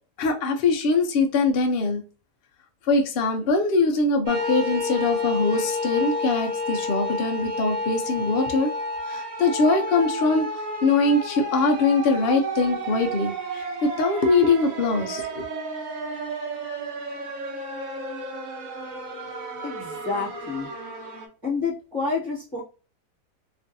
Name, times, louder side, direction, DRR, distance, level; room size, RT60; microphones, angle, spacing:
voice 1, 0.2-2.0 2.9-8.7 9.1-10.5 10.8-15.4, left 3 dB, 85° left, 0.5 m, -22 dB
sound 1, 4.2-21.3, left 1 dB, 60° right, 1.0 m, -31 dB
voice 2, 19.6-20.7 21.4-22.6, left 4 dB, 20° right, 1.3 m, -29 dB
3.0 x 2.6 x 2.5 m
omnidirectional pair, 1.8 m